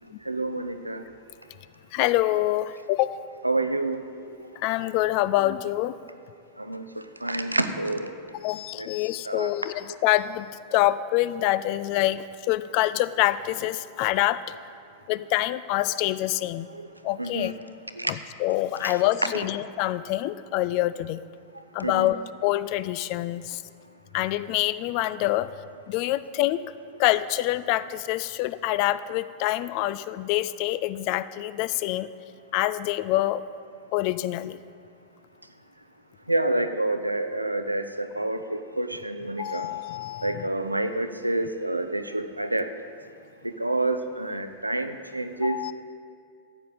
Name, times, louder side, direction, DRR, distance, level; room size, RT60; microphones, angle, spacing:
voice 1, 0.2-1.1 3.4-4.5 6.6-8.1 8.8-8.9 9.2-9.5 16.7-16.9 17.2-17.5 18.0-18.1 18.8-18.9 21.8-22.1 36.3-39.7 40.2-42.7 43.4-45.7, right 2 dB, 85° right, 9 dB, 0.5 m, -28 dB
voice 2, 1.9-3.3 4.6-6.0 8.4-14.5 15.1-16.7 17.0-17.5 18.1-21.2 21.7-23.6 24.1-25.5 25.9-26.6 27.0-32.1 32.5-33.4 33.9-34.6 39.4-40.5 45.4-45.7, left 15 dB, 45° left, 16 dB, 0.3 m, -26 dB
14.0 x 8.8 x 4.0 m, 2.3 s
figure-of-eight pair, 90°, 0 cm